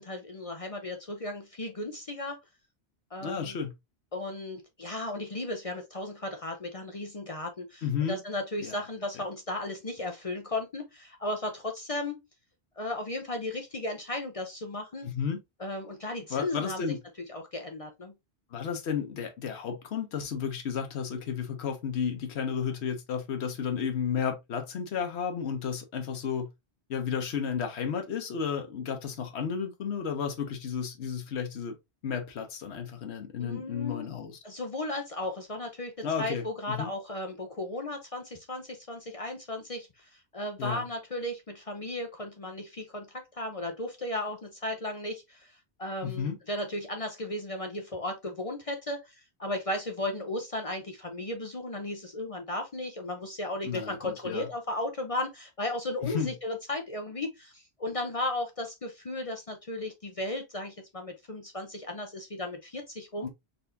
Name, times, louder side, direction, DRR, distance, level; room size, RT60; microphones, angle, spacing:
voice 1, 0.0-2.4 3.1-3.6 4.1-12.2 12.8-15.1 15.6-16.9 17.3-18.1 33.4-34.1 34.4-35.9 36.2-43.1 43.3-63.3, left 1 dB, 40° left, 0.7 m, -35 dB
voice 2, 3.2-3.7 7.8-8.2 8.6-8.8 15.0-15.4 16.3-17.0 18.5-26.5 26.9-31.7 32.0-34.4 36.0-36.9 40.6-40.8 46.0-46.4 53.6-54.5 56.0-56.3 63.2-63.3, left 7 dB, 85° left, 1.1 m, -32 dB
4.1 x 3.4 x 2.6 m
omnidirectional pair, 1.1 m